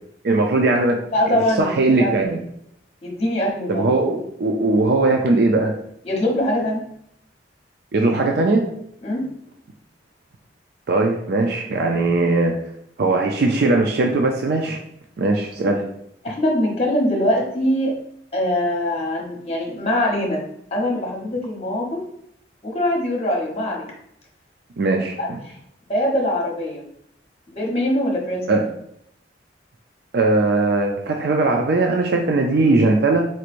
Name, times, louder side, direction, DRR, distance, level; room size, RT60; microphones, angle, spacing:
voice 1, 0.2-1.0 1.3-2.4 3.7-5.7 7.9-8.6 10.9-12.5 13.0-14.8 15.2-15.8 24.8-25.4 28.5-28.6 30.1-33.3, right 2 dB, 60° right, 2 dB, 0.4 m, -19 dB
voice 2, 1.1-2.1 3.0-3.9 6.0-6.8 9.0-9.2 16.2-17.9 18.3-20.4 20.7-22.0 22.6-23.9 25.2-25.5 25.9-26.8 27.5-28.4, left 1 dB, 35° left, 0 dB, 1.0 m, -22 dB
4.4 x 3.0 x 2.5 m, 0.71 s
head